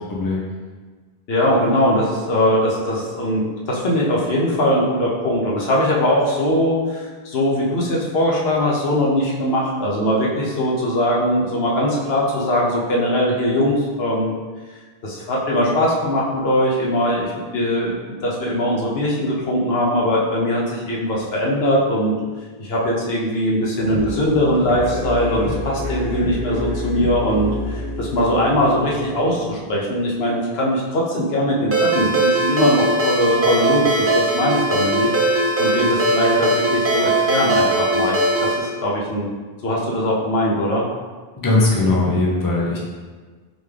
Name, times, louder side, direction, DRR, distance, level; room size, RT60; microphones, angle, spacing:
voice 1, 0.1-0.5 41.4-42.8, left 2 dB, 25° left, -4 dB, 0.7 m, -19 dB
voice 2, 1.3-14.3 15.0-22.2 22.6-39.3 39.6-40.8, equal, 75° left, -4 dB, 1.1 m, -21 dB
sound 1, 23.8-30.7, left 1 dB, 45° left, 1.1 m, -29 dB
Ringtone, 31.7-38.6, right 1 dB, 20° right, 0.4 m, -19 dB
3.9 x 3.5 x 3.3 m, 1.4 s
omnidirectional pair, 1.1 m